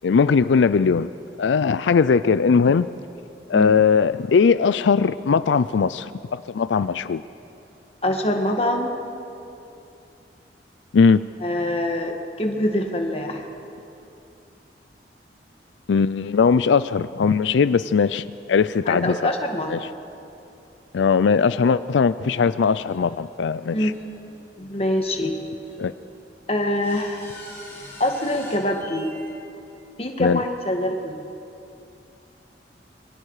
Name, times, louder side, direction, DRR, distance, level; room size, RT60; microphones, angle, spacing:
voice 1, 0.0-1.1 1.4-2.9 3.5-7.2 10.9-11.2 15.9-19.3 19.7-19.9 20.9-23.9 25.8-25.9 30.2-30.4, left 5 dB, 90° left, 15 dB, 0.4 m, -19 dB
voice 2, 8.0-8.9 11.4-13.5 18.9-19.7 23.7-23.9 24.6-25.3 26.5-27.3 28.0-29.1 30.0-31.2, left 1 dB, 35° left, 3 dB, 1.8 m, -24 dB
sound 1, 22.3-22.4 22.9-23.0 23.9-24.0 25.0-25.1 25.6-25.7 26.7-29.3, left 1 dB, 15° left, 6.0 m, -43 dB
27.0 x 22.5 x 4.9 m, 2.8 s
head